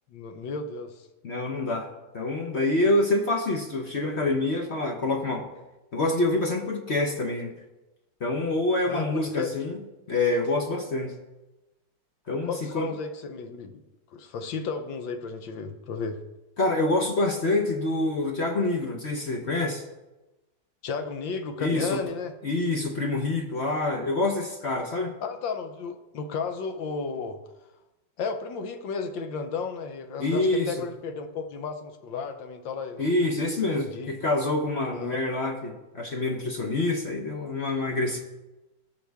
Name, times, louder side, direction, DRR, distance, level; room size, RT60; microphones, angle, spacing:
voice 1, 0.1-1.1 8.9-9.5 12.5-13.8 14.1-16.2 20.8-22.3 25.2-27.4 28.2-33.1 33.7-34.1 34.9-35.2, left 5 dB, 70° left, 7 dB, 1.6 m, -33 dB
voice 2, 1.2-1.9 2.1-5.5 5.9-7.5 8.2-9.8 10.1-11.1 12.3-12.9 16.6-19.8 21.6-22.0 22.4-25.2 30.2-30.7 33.0-38.2, left 2 dB, 45° left, 2 dB, 0.9 m, -26 dB
17.5 x 6.4 x 3.5 m, 1.0 s
omnidirectional pair, 2.2 m